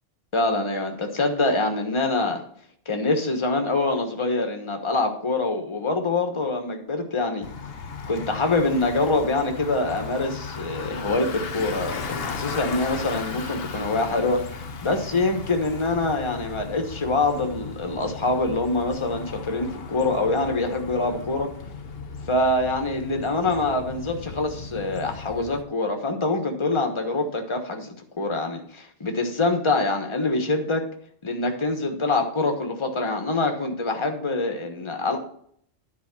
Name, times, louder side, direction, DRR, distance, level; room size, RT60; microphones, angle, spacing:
voice 1, 0.3-2.4 2.9-7.5 8.1-21.5 22.3-30.8 31.2-35.2, left 2 dB, 25° left, 4 dB, 1.2 m, -25 dB
Bicycle, 7.4-25.6, left 5 dB, 55° left, 0.9 m, -36 dB
10.5 x 4.7 x 6.0 m, 0.63 s
omnidirectional pair, 1.3 m